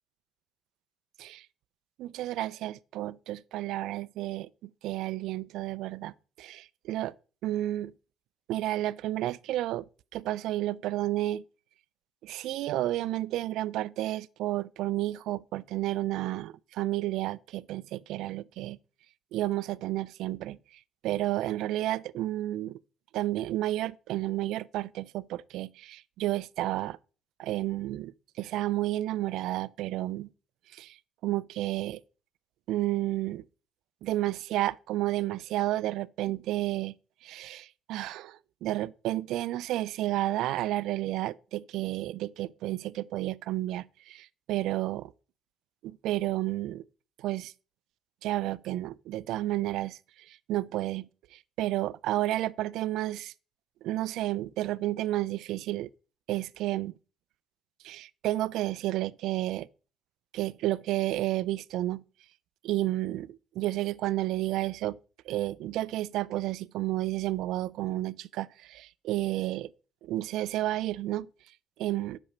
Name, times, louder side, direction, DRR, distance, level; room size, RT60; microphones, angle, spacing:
voice 1, 2.0-7.1 7.4-7.9 8.5-9.8 10.1-11.4 12.2-18.8 19.3-20.6 21.0-22.8 23.1-27.0 27.4-30.3 30.7-31.0 31.2-32.0 32.7-33.4 34.0-36.9 37.2-45.1 45.8-46.8 47.2-47.5 48.2-53.3 53.8-55.9 56.3-56.9 57.8-59.7 60.3-62.0 62.6-65.0 65.3-69.7 70.0-71.3 71.8-72.2, right 15 dB, 80° right, 0.4 m, -31 dB
8.6 x 6.1 x 5.4 m
cardioid pair, 115°, 0 cm